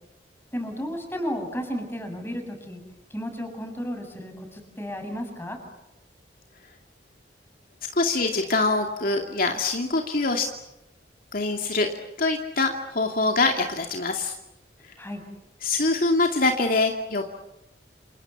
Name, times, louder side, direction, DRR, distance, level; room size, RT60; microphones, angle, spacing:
voice 1, 0.5-2.8 3.1-5.6 15.0-15.2, equal, 15° left, 4 dB, 7.4 m, -33 dB
voice 2, 7.9-10.5 11.3-11.9 12.2-14.3 15.6-17.3, left 3 dB, 55° left, 3 dB, 2.5 m, -24 dB
28.5 x 28.5 x 7.3 m, 0.89 s
head